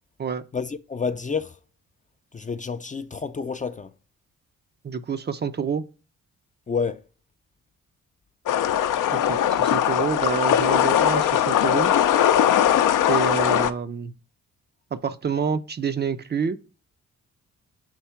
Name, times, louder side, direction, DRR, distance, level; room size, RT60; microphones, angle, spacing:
voice 1, 0.5-1.6 2.3-3.9 6.7-7.0, left 5 dB, 25° left, 0.4 m, -29 dB
voice 2, 4.8-5.8 9.1-11.9 13.1-14.1 14.9-16.6, right 6 dB, 35° right, 0.5 m, -28 dB
sound 1, 8.5-13.7, left 10 dB, 75° left, 0.5 m, -20 dB
4.6 x 4.1 x 5.7 m
cardioid pair, 70°, 32 cm